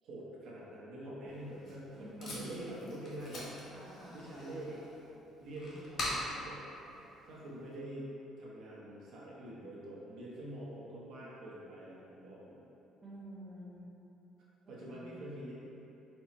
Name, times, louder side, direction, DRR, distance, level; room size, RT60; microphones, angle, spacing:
voice 1, 0.0-3.5 4.1-4.8 5.4-6.9 7.3-8.1 8.4-12.6 14.7-15.5, right 1 dB, 65° right, -6 dB, 0.9 m, -45 dB
Packing tape duct tape, 1.3-7.8, left 1 dB, 45° left, 1.1 m, -44 dB
voice 2, 2.0-2.7 3.7-4.2 13.0-13.9 14.6-15.3, right 1 dB, 15° right, -7 dB, 0.7 m, -49 dB
4.4 x 2.1 x 4.2 m, 3.0 s
cardioid pair, 140°, 0 cm